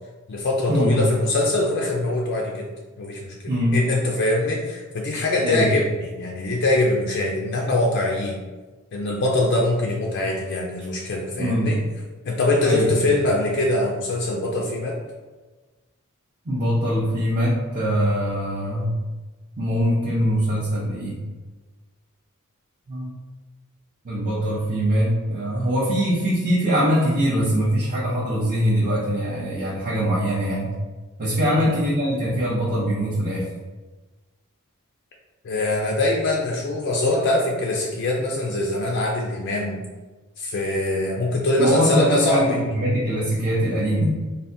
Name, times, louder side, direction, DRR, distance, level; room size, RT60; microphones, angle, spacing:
voice 1, 0.3-2.7 3.0-3.3 3.7-8.4 8.9-11.8 12.2-15.0 31.4-31.7 35.4-39.8 40.4-42.6, left 2 dB, 55° left, -1 dB, 0.4 m, -23 dB
voice 2, 3.5-3.8 5.4-5.7 11.4-11.8 12.6-13.1 16.5-19.0 19.6-21.2 22.9-23.1 24.0-30.8 31.2-33.5 41.6-44.2, equal, 35° right, -7 dB, 0.6 m, -22 dB
3.4 x 2.1 x 2.6 m, 1.3 s
head